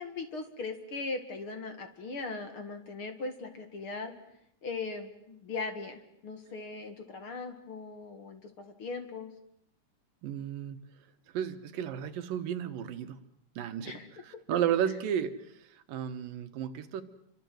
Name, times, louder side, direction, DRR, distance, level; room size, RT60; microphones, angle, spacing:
voice 1, 0.0-4.1 4.6-9.3 13.8-14.1, left 3 dB, 45° left, 7 dB, 2.5 m, -39 dB
voice 2, 10.2-10.8 11.3-13.2 13.6-14.0 14.5-15.5 15.9-17.0, right 9 dB, 85° right, 10 dB, 3.0 m, -32 dB
29.0 x 24.5 x 7.9 m, 0.74 s
omnidirectional pair, 3.8 m